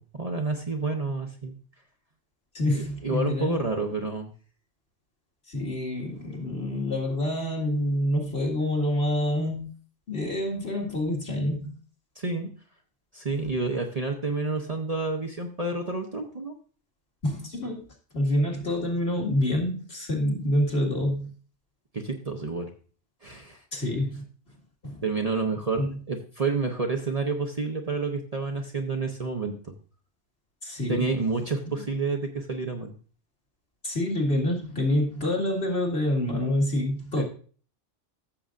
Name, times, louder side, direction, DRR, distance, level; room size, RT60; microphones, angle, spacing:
voice 1, 0.0-1.6 2.7-4.3 12.2-12.5 13.1-16.5 21.9-22.7 23.2-23.6 25.0-29.5 30.9-33.0 37.1-37.2, right 3 dB, 35° right, 2 dB, 0.9 m, -29 dB
voice 2, 2.5-3.6 5.5-9.7 10.1-11.7 17.2-17.8 18.1-21.3 23.7-24.2 24.8-25.0 25.8-25.9 30.6-31.1 33.8-37.2, left 1 dB, 55° left, -1 dB, 2.2 m, -27 dB
14.5 x 6.9 x 2.5 m, 0.41 s
omnidirectional pair, 1.3 m